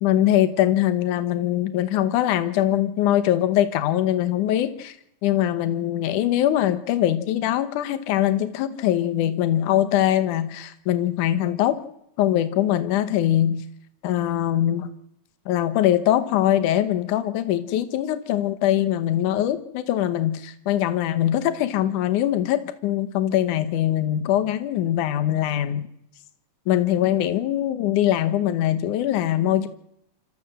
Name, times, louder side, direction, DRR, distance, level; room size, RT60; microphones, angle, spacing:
voice 1, 0.0-5.0 5.2-11.8 12.2-13.6 14.0-14.9 15.5-25.9 26.7-29.7, left 12 dB, 85° left, 10 dB, 2.5 m, -22 dB
27.0 x 13.5 x 7.8 m, 0.77 s
omnidirectional pair, 3.5 m